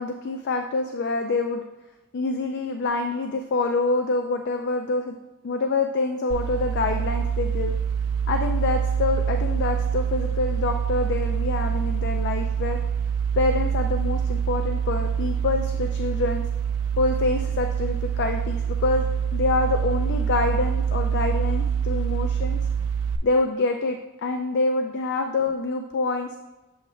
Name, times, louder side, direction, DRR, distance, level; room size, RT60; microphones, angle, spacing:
voice 1, 0.0-1.6 2.1-5.2 5.4-7.7 8.3-12.8 13.4-16.4 17.0-19.1 19.3-22.6 23.2-26.3, left 3 dB, 50° left, 5 dB, 0.4 m, -26 dB
sound 1, 6.3-23.2, right 7 dB, 80° right, 0.5 m, -25 dB
7.0 x 2.9 x 4.9 m, 1.1 s
head